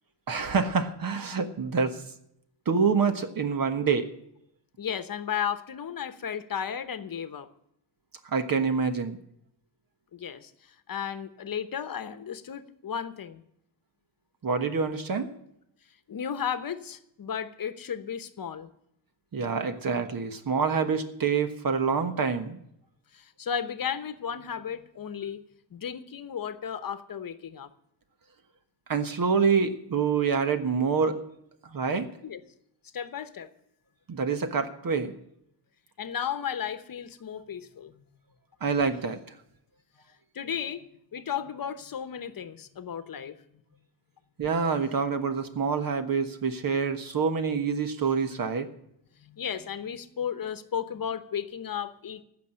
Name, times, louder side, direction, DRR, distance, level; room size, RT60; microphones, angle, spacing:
voice 1, 0.3-2.0 2.7-4.1 8.2-9.2 14.4-15.3 19.3-22.6 28.9-31.2 31.6-32.1 34.1-35.1 38.6-39.2 44.4-48.7, right 5 dB, 50° right, 8 dB, 1.3 m, -26 dB
voice 2, 4.8-7.5 10.1-13.4 16.1-18.7 23.1-25.4 25.7-27.7 32.2-32.4 32.9-33.5 36.0-38.0 40.3-43.3 49.2-52.2, left 8 dB, 50° left, 11 dB, 1.0 m, -34 dB
15.0 x 6.2 x 9.8 m, 0.75 s
wide cardioid pair, 120°, 43 cm